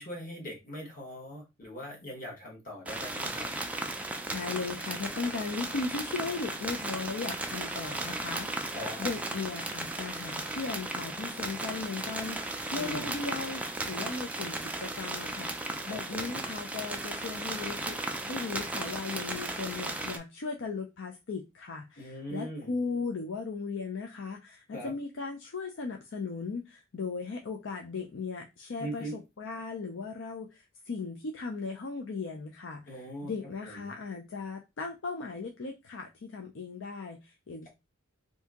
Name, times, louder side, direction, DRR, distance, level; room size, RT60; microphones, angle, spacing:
voice 1, 0.0-3.5 8.7-9.1 12.7-13.1 15.8-16.4 22.0-22.7 24.7-24.9 28.8-29.2 32.9-33.3 33.6-33.9, equal, 40° left, 1.2 m, -41 dB
sound 1, 2.9-20.2, right 2 dB, 5° right, 0.3 m, -36 dB
voice 2, 4.3-15.5 15.9-18.0 18.2-37.7, left 4 dB, 60° left, 0.5 m, -37 dB
2.7 x 2.6 x 3.5 m
head